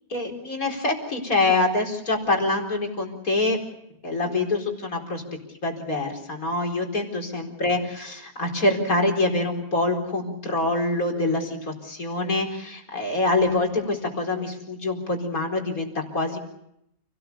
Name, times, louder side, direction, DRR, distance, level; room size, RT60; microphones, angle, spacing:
voice 1, 0.1-3.6 4.0-5.2 5.6-16.4, left 2 dB, 70° left, 2 dB, 4.8 m, -25 dB
29.5 x 18.5 x 6.9 m, 0.78 s
omnidirectional pair, 1.5 m